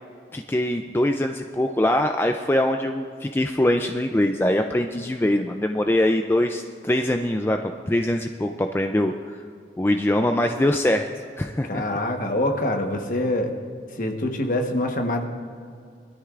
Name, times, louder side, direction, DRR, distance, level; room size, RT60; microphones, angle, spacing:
voice 1, 0.3-7.6 7.9-9.1 9.8-11.1 11.4-11.8, left 1 dB, 15° left, 5 dB, 0.3 m, -23 dB
voice 2, 11.6-13.5 14.0-15.2, left 1 dB, 50° left, 4 dB, 1.1 m, -25 dB
21.0 x 13.0 x 2.5 m, 2.2 s
head